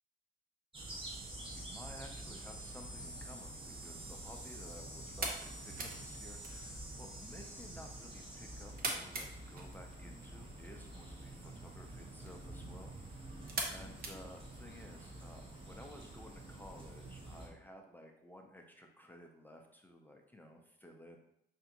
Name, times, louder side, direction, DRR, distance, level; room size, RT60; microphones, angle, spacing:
sound 1, 0.7-17.5, right 1 dB, 25° right, 1.2 m, -48 dB
voice 1, 1.6-21.2, left 1 dB, 10° left, 2 dB, 0.5 m, -55 dB
sound 2, 3.7-15.0, right 3 dB, 50° right, 0.8 m, -46 dB
5.5 x 2.5 x 2.8 m, 0.76 s
cardioid pair, 90°, 20 cm